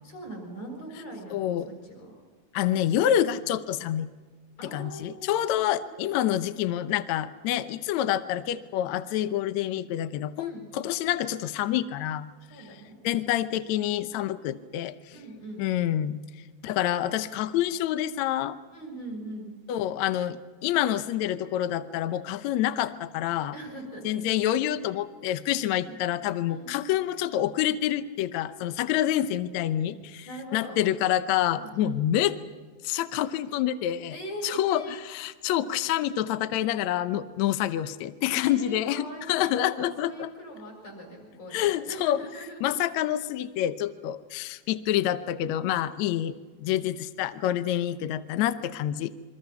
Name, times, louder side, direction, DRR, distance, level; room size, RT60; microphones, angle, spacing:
voice 1, 0.0-2.1 4.6-5.9 10.3-10.6 12.5-13.0 15.1-15.7 18.7-19.5 23.5-24.1 25.7-26.0 26.5-26.7 29.9-30.8 31.5-32.0 34.1-35.0 38.4-42.9, right 1 dB, 50° left, 0 dB, 7.5 m, -41 dB
voice 2, 1.3-1.7 2.5-4.1 4.7-12.3 12.7-12.8 13.0-15.0 15.6-16.2 16.6-18.6 19.7-23.5 24.0-30.3 30.5-32.3 32.8-34.2 34.4-40.3 41.5-42.2 42.6-49.1, left 12 dB, 70° left, 12 dB, 1.9 m, -27 dB
28.5 x 24.0 x 5.8 m, 1.4 s
omnidirectional pair, 3.8 m